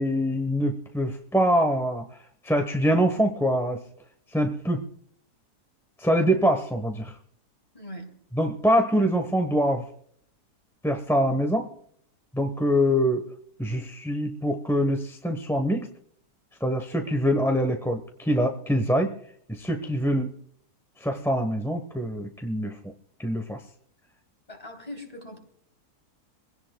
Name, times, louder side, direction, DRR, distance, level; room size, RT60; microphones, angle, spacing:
voice 1, 0.0-2.0 2.4-3.8 4.3-4.8 6.0-7.1 8.3-9.9 10.8-11.7 12.3-13.2 13.6-15.9 16.6-19.1 19.5-20.4 21.0-22.7 23.2-23.6, equal, ahead, 5 dB, 0.8 m, -24 dB
voice 2, 7.7-8.1 24.5-25.4, left 1 dB, 20° left, 2 dB, 3.3 m, -40 dB
24.0 x 17.0 x 2.3 m, 0.65 s
omnidirectional pair, 1.7 m